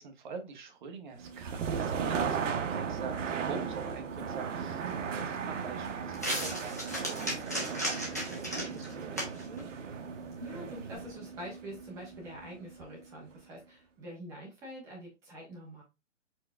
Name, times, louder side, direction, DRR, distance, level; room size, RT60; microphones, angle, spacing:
voice 1, 0.0-9.6, right 5 dB, 40° right, 5 dB, 0.9 m, -45 dB
sound 1, 1.2-13.0, right 6 dB, 75° right, 0.8 m, -36 dB
sound 2, 4.1-11.0, equal, 15° left, 0.4 m, -39 dB
voice 2, 10.4-15.8, equal, 10° right, -4 dB, 0.8 m, -45 dB
4.5 x 4.4 x 2.3 m, 0.27 s
hypercardioid pair, 165°, 38 cm